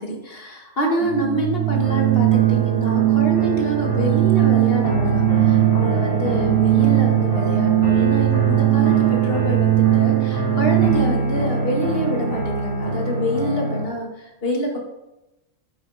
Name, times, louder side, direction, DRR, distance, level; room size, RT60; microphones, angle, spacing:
voice 1, 0.0-14.8, equal, 45° left, 1 dB, 2.2 m, -26 dB
Organ, 1.0-11.3, right 18 dB, 75° right, 0.9 m, -19 dB
sound 1, 1.8-13.8, right 2 dB, 15° right, 3.2 m, -26 dB
9.0 x 8.0 x 4.9 m, 0.94 s
omnidirectional pair, 1.3 m